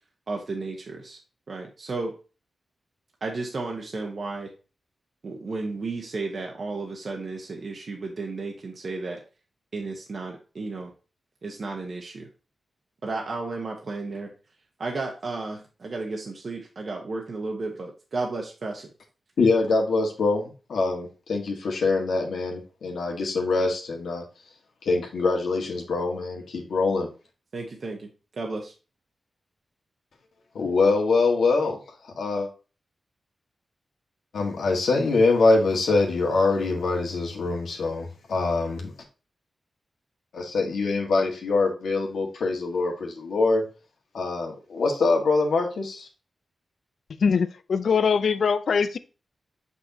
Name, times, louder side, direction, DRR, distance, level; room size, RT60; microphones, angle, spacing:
voice 1, 0.3-1.2 1.5-2.1 3.2-4.5 5.2-9.2 9.7-10.9 11.4-12.3 13.0-14.3 14.8-18.9 27.5-28.7, right 3 dB, 50° right, 1 dB, 1.1 m, -33 dB
voice 2, 19.4-24.2 24.8-27.1 30.5-32.5 34.3-38.9 40.3-43.6 44.1-46.1, left 3 dB, 90° left, 1 dB, 1.6 m, -24 dB
voice 3, 47.2-49.0, left 6 dB, 70° left, 13 dB, 0.4 m, -22 dB
6.1 x 5.5 x 2.8 m, 0.33 s
wide cardioid pair, 110°, 0 cm